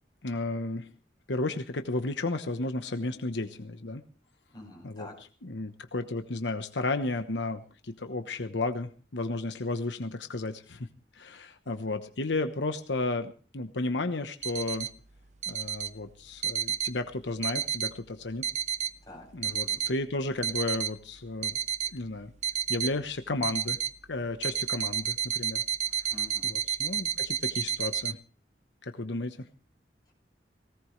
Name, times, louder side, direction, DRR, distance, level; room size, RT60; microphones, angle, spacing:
voice 1, 0.2-0.9 1.3-4.0 4.8-5.1 5.4-10.9 11.1-14.9 15.5-18.4 19.3-21.6 21.9-22.3 22.7-23.8 24.1-25.6 26.4-28.2 28.8-29.5, left 2 dB, 90° left, 8 dB, 1.1 m, -33 dB
voice 2, 4.5-5.1 19.0-19.8 26.1-26.6, left 2 dB, 25° left, -2 dB, 8.0 m, -47 dB
sound 1, 14.4-14.9 15.4-15.9 16.4-16.9 17.4-17.9 18.4-18.9 19.4-19.9 20.4-20.9 21.4-21.9 22.4-22.9 23.4-23.9 24.4-28.1, right 9 dB, 40° right, 0.6 m, -31 dB
19.0 x 17.5 x 3.3 m, 0.39 s
head